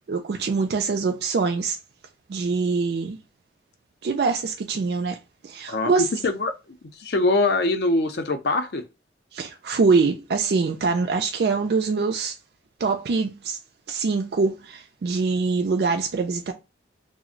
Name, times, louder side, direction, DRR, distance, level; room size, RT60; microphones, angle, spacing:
voice 1, 0.0-1.8 2.3-3.2 4.0-5.2 5.4-6.1 9.3-12.4 12.8-13.6 13.9-16.5, right 4 dB, 60° right, 0.3 m, -24 dB
voice 2, 5.7-8.8, left 2 dB, 60° left, 0.5 m, -23 dB
2.4 x 2.0 x 3.6 m
head